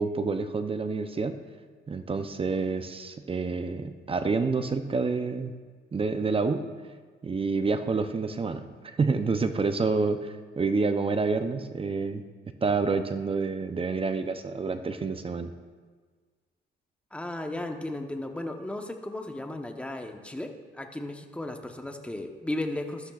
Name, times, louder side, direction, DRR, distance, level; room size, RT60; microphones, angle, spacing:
voice 1, 0.0-1.4 1.9-5.5 5.9-6.6 7.2-12.2 12.6-15.5, right 4 dB, 30° right, 8 dB, 0.6 m, -28 dB
voice 2, 17.1-23.1, left 1 dB, 5° left, 4 dB, 0.9 m, -35 dB
13.0 x 12.0 x 2.4 m, 1.5 s
cardioid pair, 90°, 20 cm